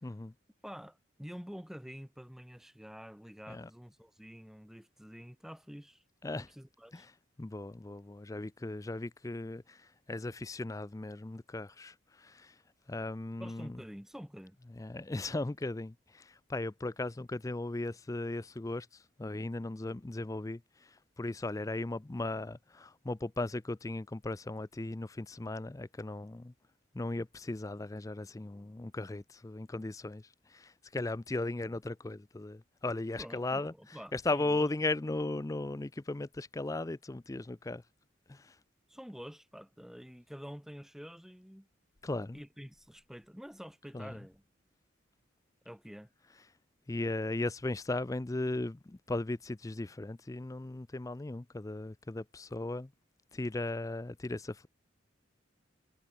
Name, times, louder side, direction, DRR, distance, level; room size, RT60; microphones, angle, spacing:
voice 1, 0.0-0.3 3.5-3.7 6.2-6.5 6.9-7.1 7.4-12.5 12.9-13.8 14.7-26.5 26.9-33.7 34.1-37.8 38.3-38.5 42.0-42.4 43.9-44.1 46.9-52.9 53.3-54.7, left 2 dB, 15° left, 0.4 m, -37 dB
voice 2, 0.6-6.0 6.3-7.1 13.4-14.6 33.2-34.7 38.9-41.7 42.3-44.4 45.6-46.1, equal, ahead, 1.2 m, -48 dB
head